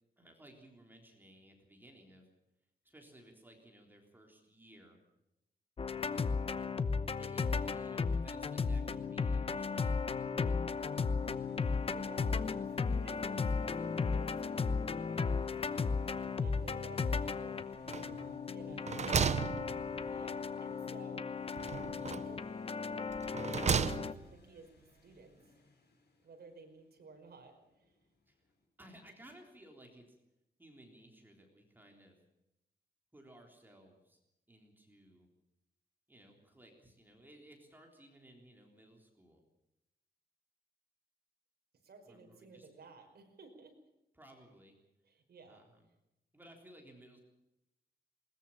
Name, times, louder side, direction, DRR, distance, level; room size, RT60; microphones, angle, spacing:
voice 1, 0.2-2.3 2.8-5.0 7.2-10.1 18.5-18.7 28.3-28.4 28.8-30.2 30.6-32.2 33.1-34.2 34.5-35.3 36.1-39.4 42.1-42.7 44.1-44.8 45.5-45.9 46.3-47.2, right 1 dB, 10° right, 2 dB, 3.6 m, -58 dB
sound 1, 5.8-24.1, left 5 dB, 35° left, 0.9 m, -35 dB
sound 2, 11.2-28.7, left 2 dB, 70° left, 6.0 m, -63 dB
voice 2, 11.9-16.1 16.4-17.1 17.4-17.7 18.5-19.1 20.1-21.3 22.3-22.6 22.8-25.6 26.2-27.9 41.8-43.8 45.1-45.7, right 4 dB, 65° right, 3 dB, 5.3 m, -56 dB
sound 3, 17.9-18.4 18.7-20.3 21.6-22.4 23.1-24.4, right 6 dB, 40° right, 0.7 m, -34 dB
21.0 x 20.5 x 7.3 m, 0.87 s
wide cardioid pair, 180°, 17 cm